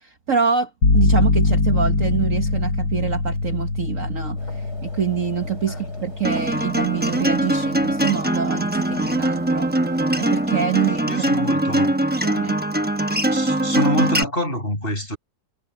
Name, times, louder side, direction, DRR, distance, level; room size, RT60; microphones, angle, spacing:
voice 1, 0.0-4.4 4.8-9.7 10.2-11.5 12.2-12.6, right 7 dB, 50° right, 1.5 m, -26 dB
sound 1, 0.8-8.5, left 3 dB, 75° left, 5.8 m, -23 dB
sound 2, 4.4-11.2, left 3 dB, 60° left, 8.3 m, -41 dB
Acoustic guitar, 6.2-14.2, right 1 dB, 10° right, 0.4 m, -22 dB
voice 2, 11.1-12.0 13.3-15.2, equal, 30° left, 6.7 m, -26 dB
omnidirectional pair, 2.0 m